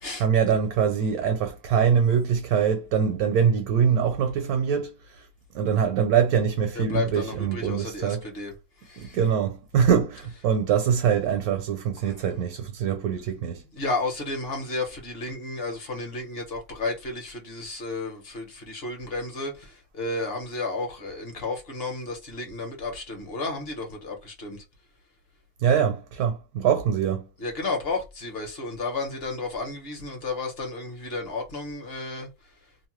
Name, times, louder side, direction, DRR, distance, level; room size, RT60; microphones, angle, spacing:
voice 1, 0.2-5.3 5.5-8.2 9.0-13.6 25.6-27.3, right 7 dB, 75° right, 1.1 m, -23 dB
voice 2, 6.7-8.5 8.8-9.2 12.0-12.1 13.7-24.6 27.4-32.3, left 3 dB, 45° left, 1.1 m, -32 dB
2.8 x 2.0 x 3.0 m
omnidirectional pair, 1.6 m